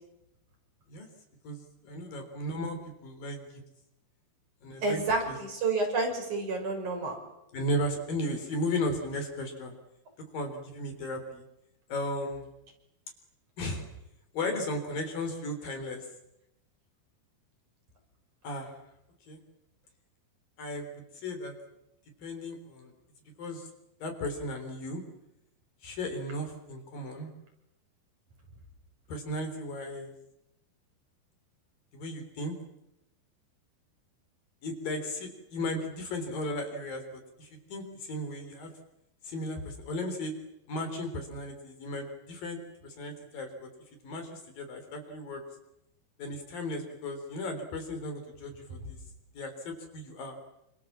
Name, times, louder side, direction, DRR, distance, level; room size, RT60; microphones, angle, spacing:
voice 1, 1.4-3.6 4.6-5.4 7.5-9.7 10.3-11.4 11.9-12.5 13.6-13.9 14.3-16.1 18.4-18.7 19.3-19.4 20.6-21.6 22.2-22.9 23.4-23.7 24.0-25.0 25.8-27.3 29.1-30.1 31.9-32.6 34.6-38.7 39.2-40.3 40.7-43.7 44.0-45.4 46.2-49.0 49.3-50.4, left 1 dB, 55° left, 5 dB, 5.4 m, -35 dB
voice 2, 4.8-7.2, right 3 dB, 45° right, 2 dB, 7.3 m, -29 dB
29.0 x 27.0 x 7.5 m, 0.86 s
omnidirectional pair, 5.0 m